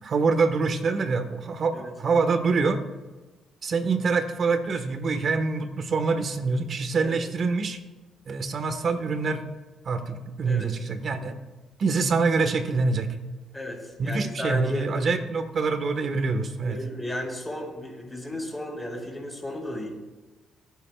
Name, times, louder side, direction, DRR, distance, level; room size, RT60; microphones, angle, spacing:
voice 1, 0.0-2.8 3.6-7.8 8.3-9.4 9.8-11.3 11.8-13.1 14.0-16.8, right 4 dB, 50° right, 8 dB, 1.5 m, -25 dB
voice 2, 13.5-14.9 16.6-19.9, left 1 dB, 10° left, -1 dB, 5.1 m, -34 dB
22.0 x 11.0 x 2.5 m, 1.2 s
cardioid pair, 90°, 0 cm